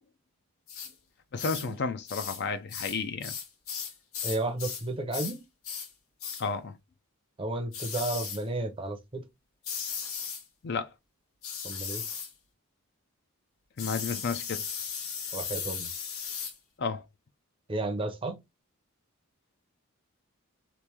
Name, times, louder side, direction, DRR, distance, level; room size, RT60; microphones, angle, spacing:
sound 1, 0.7-0.9 1.4-1.7 2.1-2.4 2.7-4.9 5.1-5.4 5.6-5.9 6.2-6.5 7.7-8.4 9.6-10.4 11.4-12.3 13.8-16.6, left 7 dB, 70° left, 0.9 m, -36 dB
voice 1, 1.3-3.3 6.4-6.7 10.6-10.9 13.8-14.6 16.8-17.0, left 5 dB, 50° left, 0.4 m, -32 dB
voice 2, 4.2-5.4 7.4-9.2 11.6-12.0 15.3-15.9 17.7-18.4, right 2 dB, 25° right, 0.5 m, -32 dB
3.0 x 2.5 x 3.4 m
head